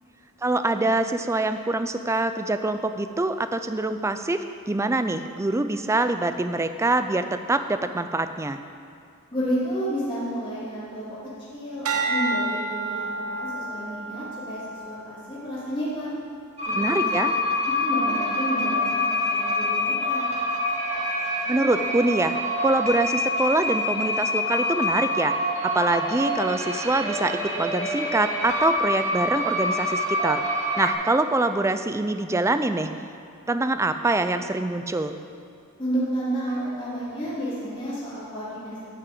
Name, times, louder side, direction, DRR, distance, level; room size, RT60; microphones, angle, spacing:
voice 1, 0.4-8.6 16.7-17.3 21.5-22.3 22.6-25.3 25.6-30.4 30.8-32.9 33.5-35.2, right 2 dB, 15° right, 9 dB, 0.4 m, -24 dB
voice 2, 9.3-11.2 11.5-16.1 16.7-17.3 17.6-20.3 35.8-38.9, right 1 dB, 25° left, -10 dB, 2.9 m, -31 dB
sound 1, 11.8-16.3 16.9-17.3, right 2 dB, 75° right, 1.1 m, -31 dB
sound 2, 16.6-30.9, left 1 dB, 30° right, 1.8 m, -26 dB
11.0 x 6.2 x 7.7 m, 2.4 s
head